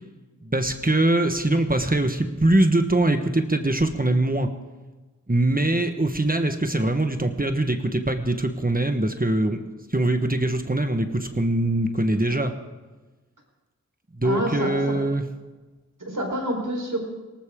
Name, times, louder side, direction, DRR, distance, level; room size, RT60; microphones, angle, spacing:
voice 1, 0.4-4.5 5.3-9.6 9.9-12.5 14.2-15.2, right 1 dB, 30° right, 6 dB, 1.3 m, -22 dB
voice 2, 14.2-15.0 16.0-17.0, right 1 dB, 85° right, 1 dB, 4.3 m, -27 dB
19.0 x 19.0 x 3.8 m, 1.2 s
wide cardioid pair, 40°, 31 cm